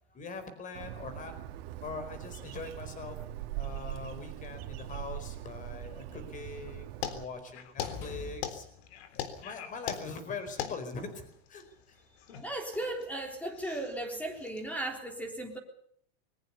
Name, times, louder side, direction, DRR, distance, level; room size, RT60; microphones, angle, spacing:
voice 1, 0.1-1.3 1.8-3.2 3.5-8.7 9.1-12.0, left 4 dB, 25° left, 10 dB, 4.6 m, -42 dB
Bird, 0.7-7.2, right 13 dB, 65° right, 2.4 m, -41 dB
sound 1, 7.0-14.7, left 9 dB, 75° left, 3.7 m, -41 dB
sound 2, 7.8-9.0, left 3 dB, 45° left, 7.4 m, -44 dB
voice 2, 12.3-15.6, right 1 dB, 5° left, 5 dB, 3.7 m, -36 dB
21.5 x 20.0 x 7.0 m, 0.63 s
supercardioid pair, 155°, 32 cm